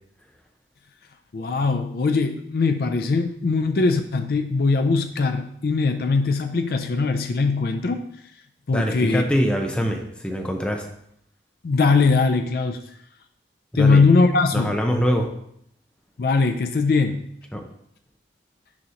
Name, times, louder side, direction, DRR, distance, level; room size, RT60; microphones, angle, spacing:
voice 1, 1.3-8.0 8.7-9.2 11.6-12.8 13.8-14.8 16.2-17.3, left 4 dB, 55° left, 6 dB, 0.4 m, -21 dB
voice 2, 8.7-10.9 13.7-14.0 14.5-15.3 17.5-17.6, equal, 5° left, 2 dB, 0.6 m, -23 dB
6.3 x 3.0 x 5.6 m, 0.72 s
head